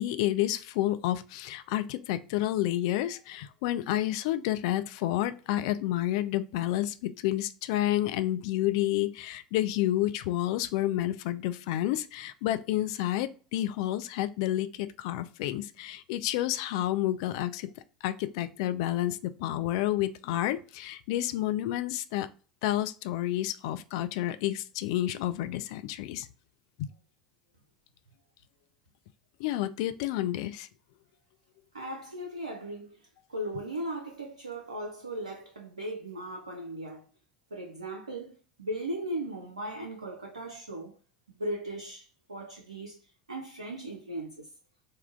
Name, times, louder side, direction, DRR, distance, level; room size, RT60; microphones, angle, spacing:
voice 1, 0.0-17.7 18.0-22.3 22.6-26.3 26.8-26.9 29.4-30.7, left 14 dB, 60° left, 0.3 m, -30 dB
voice 2, 31.7-33.0 33.3-37.0 37.5-40.9 41.3-43.0 43.3-44.5, right 1 dB, 85° right, 0.4 m, -37 dB
3.5 x 2.2 x 3.6 m
figure-of-eight pair, 75°, 4 cm